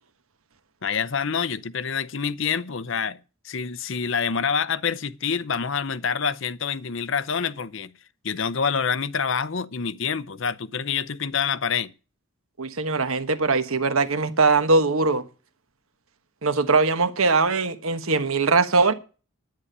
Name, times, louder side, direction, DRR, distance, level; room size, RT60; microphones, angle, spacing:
voice 1, 0.8-3.2 3.4-7.9 8.2-11.9, left 6 dB, 60° left, 0.7 m, -27 dB
voice 2, 12.6-15.2 16.4-18.9, right 3 dB, 75° right, 1.3 m, -21 dB
10.5 x 9.8 x 6.7 m
head